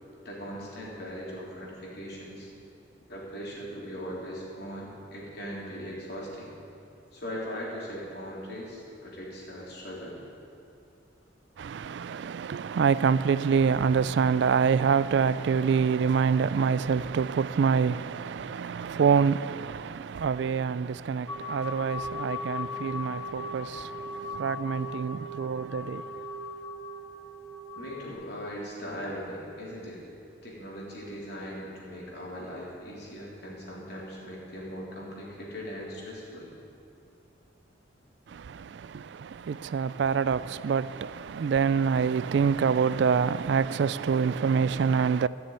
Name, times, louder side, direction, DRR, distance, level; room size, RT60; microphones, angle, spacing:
voice 1, 0.2-2.5 3.1-6.5 7.1-10.2 27.8-30.0 30.4-36.5, equal, 60° left, 3.6 m, -39 dB
voice 2, 11.6-26.1 38.3-45.3, right 6 dB, 65° right, 0.3 m, -26 dB
sound 1, 21.3-28.1, left 2 dB, 15° left, 3.3 m, -38 dB
14.0 x 7.0 x 9.2 m
head